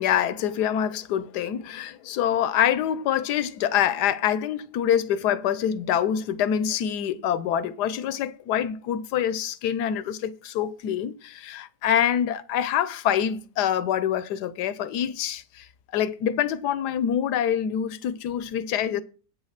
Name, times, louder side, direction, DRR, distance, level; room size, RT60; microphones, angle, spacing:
voice 1, 0.0-15.7 15.9-19.0, left 9 dB, 75° left, 1.3 m, -25 dB
8.7 x 6.5 x 5.8 m
omnidirectional pair, 1.8 m